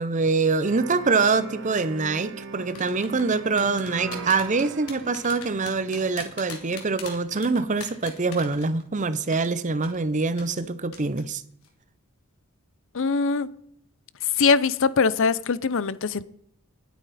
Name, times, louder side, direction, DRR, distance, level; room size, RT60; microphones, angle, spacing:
voice 1, 0.0-11.4, right 4 dB, 35° right, 0.7 m, -24 dB
sound 1, 0.6-6.6, right 3 dB, 60° right, 1.4 m, -39 dB
sound 2, 1.8-2.1 2.7-9.0 9.3-9.5 9.8-10.0 10.4-10.7 10.9-11.2 11.5-11.7, left 6 dB, 75° left, 2.9 m, -40 dB
voice 2, 12.9-13.5 14.4-16.2, left 5 dB, 60° left, 0.6 m, -22 dB
20.0 x 9.2 x 4.2 m
head